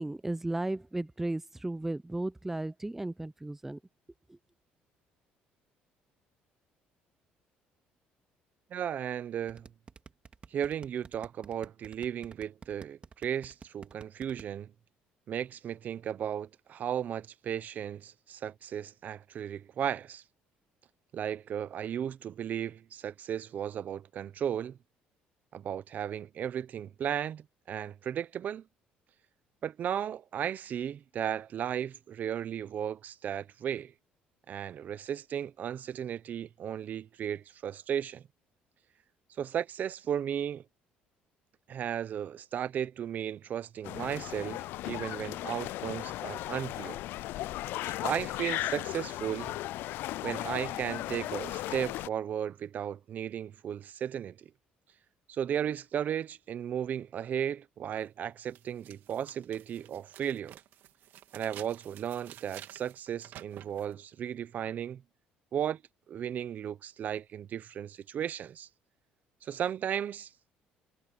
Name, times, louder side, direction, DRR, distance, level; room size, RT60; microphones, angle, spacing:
voice 1, 0.0-3.8, right 2 dB, 10° right, 0.7 m, -35 dB
voice 2, 8.7-9.7 10.5-14.7 15.3-20.2 21.1-24.8 25.5-28.6 29.6-33.9 34.5-38.2 39.4-40.6 41.7-47.0 47.8-49.5 50.2-54.5 55.3-60.6 61.3-65.0 65.5-65.8 66.1-68.7 69.4-70.3, right 9 dB, 50° right, 0.8 m, -35 dB
sound 1, 9.5-14.4, right 5 dB, 30° right, 2.1 m, -49 dB
sound 2, 43.8-52.1, left 16 dB, 75° left, 0.4 m, -36 dB
sound 3, 57.9-58.0 58.5-63.9, right 12 dB, 70° right, 2.4 m, -51 dB
cardioid pair, 105°, 4 cm